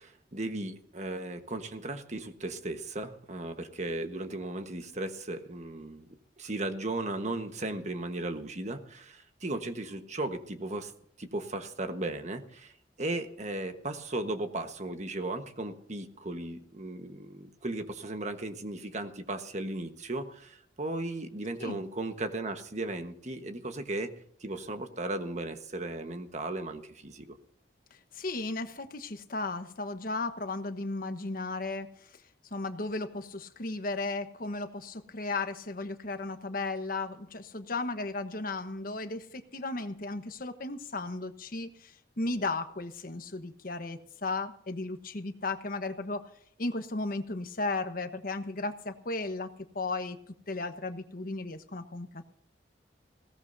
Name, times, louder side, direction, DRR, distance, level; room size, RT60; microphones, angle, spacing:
voice 1, 0.0-6.1 6.4-10.9 11.2-12.7 13.0-24.1 24.4-27.4, right 2 dB, 40° right, 7 dB, 1.3 m, -36 dB
voice 2, 28.1-32.1 32.5-46.2 46.6-49.5 49.7-50.2 50.5-52.2, left 3 dB, 55° left, 9 dB, 1.2 m, -35 dB
20.5 x 17.5 x 2.7 m, 0.63 s
head